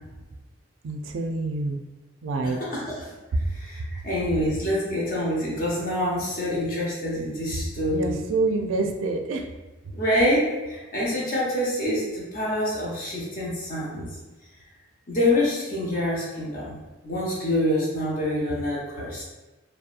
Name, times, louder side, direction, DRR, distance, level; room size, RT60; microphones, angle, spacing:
voice 1, 0.8-1.8 2.2-2.6 7.9-9.4, right 3 dB, 90° right, 4 dB, 0.3 m, -26 dB
voice 2, 2.4-3.1 3.5-8.2 9.9-14.1 15.1-16.8 17.0-19.2, left 1 dB, 45° left, -5 dB, 0.7 m, -26 dB
2.7 x 2.2 x 2.4 m, 1.1 s
head